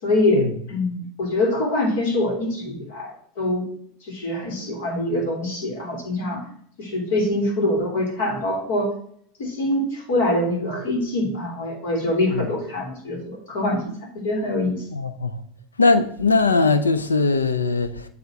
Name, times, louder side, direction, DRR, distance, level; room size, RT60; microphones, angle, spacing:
voice 1, 0.0-3.6 4.0-6.4 6.8-8.9 9.4-13.8 14.2-14.8, left 1 dB, 65° left, 3.1 m, -24 dB
voice 2, 14.9-15.4 15.8-18.1, left 3 dB, 90° left, 0.7 m, -20 dB
7.9 x 3.8 x 5.9 m
hypercardioid pair, 85°, 0 cm